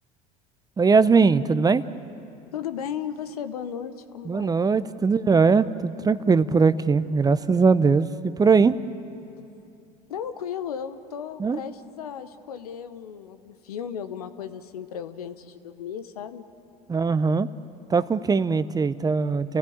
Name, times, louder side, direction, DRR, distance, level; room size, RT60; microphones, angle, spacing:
voice 1, 0.8-1.8 4.3-8.8 11.4-11.6 16.9-17.5 17.9-19.6, right 5 dB, 20° right, 15 dB, 0.7 m, -20 dB
voice 2, 2.5-4.6 6.3-6.5 10.1-16.5, left 8 dB, 80° left, 11 dB, 1.1 m, -35 dB
30.0 x 15.5 x 8.6 m, 2.6 s
hypercardioid pair, 70°, 19 cm